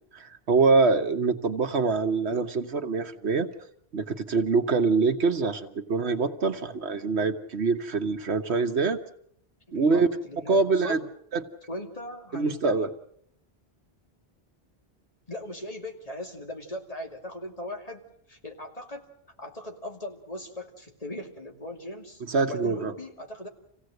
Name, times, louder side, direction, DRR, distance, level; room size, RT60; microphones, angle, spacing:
voice 1, 0.1-3.5 3.9-9.0 9.7-10.1 10.5-11.0 11.3-11.4 12.3-12.9 22.3-22.9, right 4 dB, 90° right, 8 dB, 1.5 m, -24 dB
voice 2, 9.7-11.0 11.7-12.9 15.3-19.0 19.4-23.5, left 1 dB, 35° left, 2 dB, 2.7 m, -39 dB
27.0 x 16.5 x 7.9 m, 0.69 s
omnidirectional pair, 1.1 m